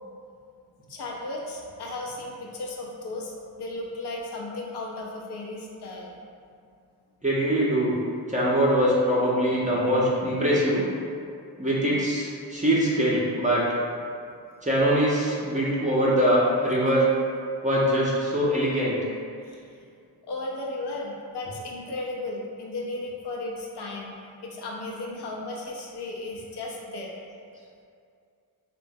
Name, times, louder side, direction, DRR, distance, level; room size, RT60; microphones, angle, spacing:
voice 1, 0.9-6.2 20.3-24.2 24.4-27.2, left 2 dB, 70° left, -2 dB, 0.6 m, -35 dB
voice 2, 7.2-7.9 8.3-10.8 11.6-13.6 14.6-17.1 17.6-19.0, equal, 20° right, -7 dB, 0.6 m, -23 dB
3.0 x 2.2 x 2.6 m, 2.3 s
supercardioid pair, 45°, 42 cm